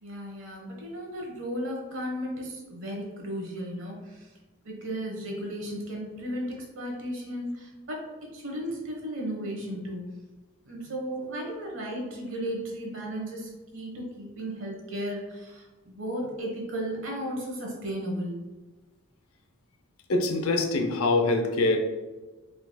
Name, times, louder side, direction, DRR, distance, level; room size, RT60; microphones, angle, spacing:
voice 1, 0.0-4.3 4.6-8.0 8.3-10.1 10.6-18.4, equal, 60° right, -1 dB, 1.2 m, -35 dB
voice 2, 20.1-21.8, left 2 dB, 75° left, 5 dB, 0.6 m, -24 dB
4.6 x 3.7 x 2.3 m, 1.2 s
head